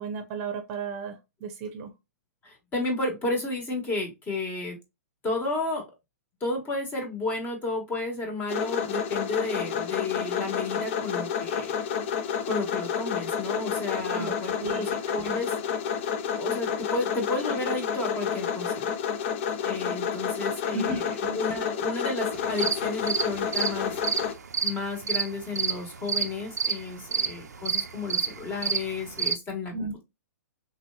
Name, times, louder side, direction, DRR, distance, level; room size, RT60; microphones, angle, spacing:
voice 1, 0.0-1.9 13.7-13.8 14.1-14.9 15.3-15.4 20.7-21.4 29.7-30.0, right 3 dB, 40° right, 0.7 m, -34 dB
voice 2, 2.4-4.8 5.2-5.8 6.4-11.7 12.5-15.5 16.4-18.9 19.6-24.0 24.6-30.0, left 3 dB, 20° left, 1.3 m, -32 dB
sound 1, 8.5-24.3, left 7 dB, 45° left, 0.5 m, -30 dB
sound 2, 22.3-29.3, right 6 dB, 90° right, 0.4 m, -29 dB
3.2 x 2.7 x 2.3 m
hypercardioid pair, 130°, 9 cm